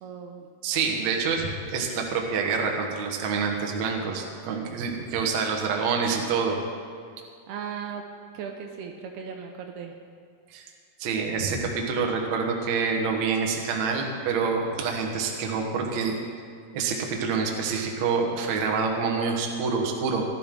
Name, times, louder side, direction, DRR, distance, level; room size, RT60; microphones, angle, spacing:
voice 1, 0.0-0.5 7.5-8.0 8.3-9.9, right 7 dB, 80° right, 3 dB, 2.6 m, -37 dB
voice 2, 0.6-6.6 10.5-10.7 11.0-16.2 16.7-20.2, right 5 dB, 60° right, 1 dB, 1.9 m, -27 dB
17.0 x 12.0 x 3.8 m, 2.1 s
omnidirectional pair, 4.9 m